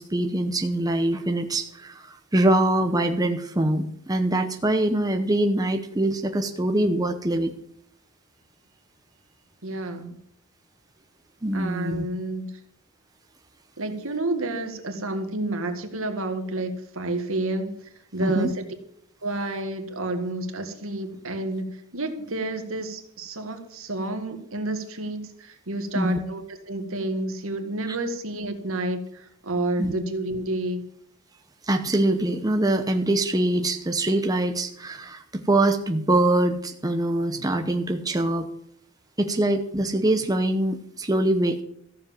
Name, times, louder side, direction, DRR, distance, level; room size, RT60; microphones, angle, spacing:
voice 1, 0.0-7.5 11.4-12.1 18.2-18.5 25.9-26.2 27.9-28.0 29.8-29.9 31.6-38.5 39.2-41.6, right 1 dB, 15° right, 5 dB, 0.8 m, -23 dB
voice 2, 9.6-10.2 11.5-12.5 13.8-18.6 19.2-26.4 26.7-30.9, right 2 dB, 65° right, 6 dB, 1.9 m, -30 dB
14.5 x 7.4 x 7.6 m, 0.69 s
head